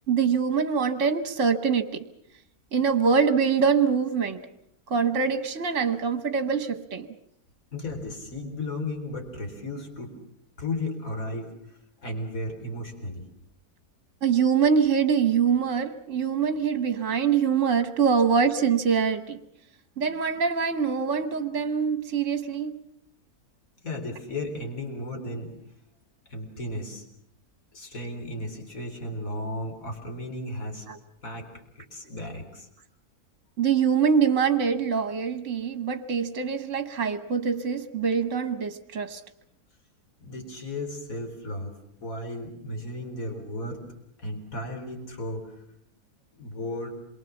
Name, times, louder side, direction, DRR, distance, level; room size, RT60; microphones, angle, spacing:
voice 1, 0.1-2.0 2.7-4.4 4.9-7.1 14.2-19.4 20.0-22.8 30.9-31.0 33.6-39.2, right 6 dB, 55° right, 9 dB, 1.5 m, -24 dB
voice 2, 7.7-10.1 10.6-13.3 23.8-25.5 26.3-27.0 27.7-30.9 31.2-31.5 31.8-32.7 40.2-43.8 44.2-45.6 46.4-46.9, left 1 dB, 60° left, 4 dB, 4.4 m, -35 dB
27.0 x 23.0 x 7.1 m, 0.73 s
omnidirectional pair, 1.6 m